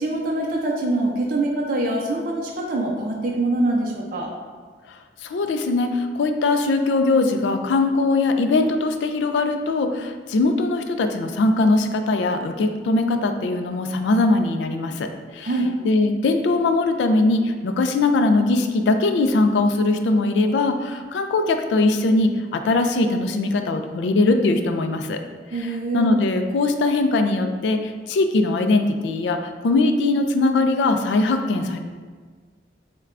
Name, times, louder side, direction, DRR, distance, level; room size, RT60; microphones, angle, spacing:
voice 1, 0.0-4.3 15.4-15.7 25.5-26.1, right 2 dB, 50° right, -1 dB, 0.4 m, -24 dB
voice 2, 5.2-15.5 15.8-25.2 25.5-31.8, left 2 dB, 80° left, 7 dB, 0.3 m, -21 dB
6.3 x 2.2 x 2.4 m, 1.5 s
head